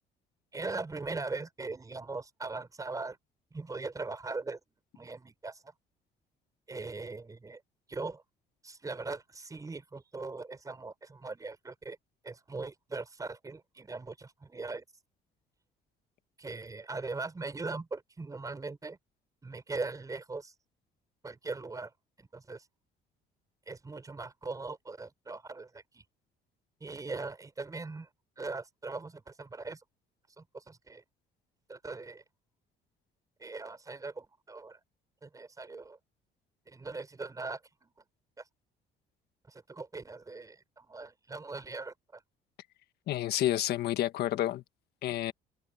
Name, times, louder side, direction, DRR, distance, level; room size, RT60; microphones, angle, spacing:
voice 1, 0.5-3.2 3.5-4.6 4.9-5.7 6.7-7.6 7.9-8.2 8.6-12.0 12.2-14.8 16.4-19.0 19.4-20.5 21.2-21.9 22.2-22.7 23.7-26.0 26.8-28.1 28.4-29.8 30.4-31.0 31.7-32.2 33.4-34.8 35.2-36.0 36.7-37.9 38.4-38.5 39.5-42.2, right 3 dB, 20° right, 4.9 m, -40 dB
voice 2, 43.1-44.6 45.0-45.3, left 13 dB, 70° left, 1.6 m, -29 dB
open air
cardioid pair, 110°, 17 cm